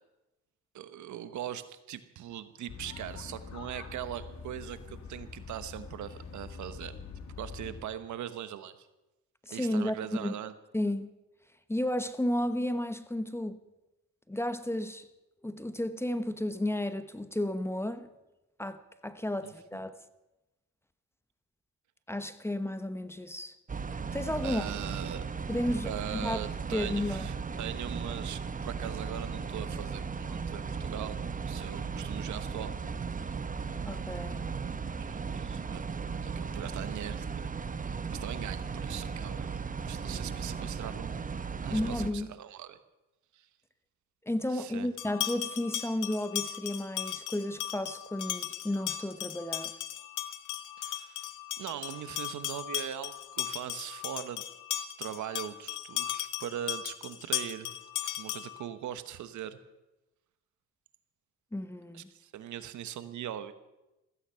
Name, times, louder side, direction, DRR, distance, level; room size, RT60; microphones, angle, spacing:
voice 1, 0.7-6.9 7.4-8.9 9.5-10.5 19.4-19.5 24.4-25.3 25.8-31.2 31.5-32.7 33.3-33.4 35.0-35.8 36.1-37.2 38.0-39.6 39.8-41.2 41.6-42.8 43.3-43.5 44.5-44.9 50.8-51.3 51.6-54.4 54.8-57.7 58.0-59.6 61.9-63.5, right 10 dB, 70° right, 1.2 m, -41 dB
sound 1, 2.7-7.8, left 5 dB, 65° left, 2.6 m, -45 dB
voice 2, 9.5-10.4 10.7-11.1 11.7-13.6 14.3-15.1 15.4-18.1 18.6-19.9 22.1-23.5 24.1-24.7 25.5-26.5 26.7-27.3 33.9-34.4 41.7-42.3 44.3-49.7 61.5-62.1, left 1 dB, 10° left, 0.9 m, -33 dB
sound 2, 23.7-42.1, right 5 dB, 25° right, 0.9 m, -36 dB
sound 3, 45.0-58.6, left 12 dB, 85° left, 1.0 m, -37 dB
15.5 x 15.0 x 5.7 m
cardioid pair, 90°, 30 cm